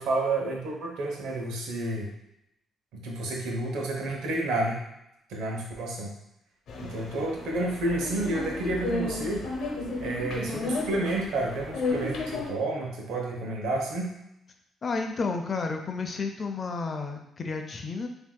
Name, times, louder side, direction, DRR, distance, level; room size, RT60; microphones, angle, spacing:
voice 1, 0.0-2.1 2.9-4.8 5.3-6.1 6.8-9.4 10.0-14.1, right 2 dB, 90° right, 0 dB, 0.9 m, -30 dB
sound 1, 6.7-12.5, left 3 dB, 70° left, 0.8 m, -33 dB
voice 2, 14.8-18.1, left 4 dB, 40° left, 4 dB, 0.6 m, -31 dB
6.0 x 2.7 x 2.3 m, 0.82 s
cardioid pair, 90°, 0 cm